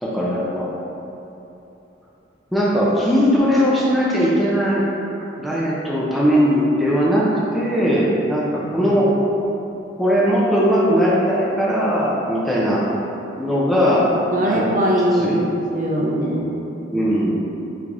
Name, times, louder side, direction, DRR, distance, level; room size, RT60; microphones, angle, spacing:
voice 1, 0.0-0.7 2.5-4.8 5.4-7.3 7.5-9.1 10.0-12.8 13.4-14.7 15.1-15.4 16.9-17.4, equal, ahead, -7 dB, 0.4 m, -19 dB
voice 2, 14.1-16.5, equal, 45° right, -3 dB, 0.6 m, -21 dB
3.8 x 3.3 x 3.5 m, 3.0 s
head